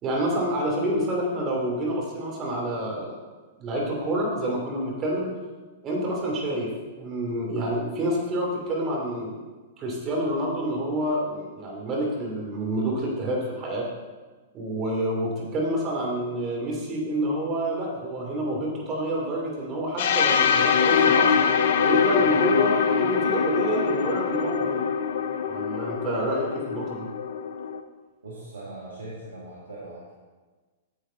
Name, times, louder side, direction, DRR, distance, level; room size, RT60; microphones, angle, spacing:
voice 1, 0.0-3.2 3.6-5.3 5.8-6.7 7.0-9.4 9.8-13.9 14.5-21.4 21.8-24.8 25.4-27.1, right 1 dB, 30° right, -2 dB, 3.1 m, -28 dB
sound 1, 20.0-27.8, left 6 dB, 60° left, 0.6 m, -23 dB
voice 2, 28.2-30.1, right 2 dB, 85° right, -6 dB, 1.9 m, -40 dB
9.3 x 7.1 x 4.1 m, 1.3 s
hypercardioid pair, 110°, 0 cm